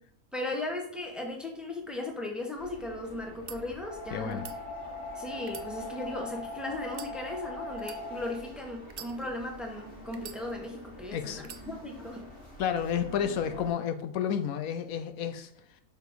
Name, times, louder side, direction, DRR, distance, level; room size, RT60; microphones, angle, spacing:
voice 1, 0.3-4.5 5.1-12.3, left 2 dB, ahead, 1 dB, 1.1 m, -37 dB
sound 1, 2.6-13.7, left 2 dB, 45° left, 1.4 m, -43 dB
sound 2, 3.3-3.6 4.3-4.6 5.4-6.3 6.9-7.1 7.8-8.0 8.9-9.5 10.1-10.8 11.4-11.7, right 8 dB, 55° right, 0.5 m, -45 dB
voice 2, 4.1-4.4 11.1-11.4 12.6-15.5, left 8 dB, 80° left, 9 dB, 1.1 m, -31 dB
5.4 x 4.3 x 6.2 m, 0.68 s
omnidirectional pair, 1.5 m